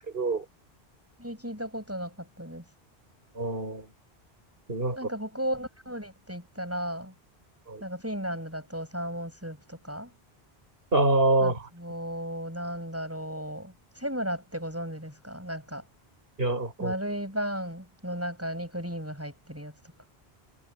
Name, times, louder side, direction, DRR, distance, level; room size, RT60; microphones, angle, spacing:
voice 1, 0.1-0.4 3.3-3.9 4.7-5.0 7.7-7.8 10.9-11.7 16.4-16.9, right 2 dB, 65° right, 5.1 m, -25 dB
voice 2, 1.2-2.6 5.0-7.1 7.8-10.1 11.4-15.8 16.8-19.7, equal, 15° right, 7.5 m, -35 dB
omnidirectional pair, 1.1 m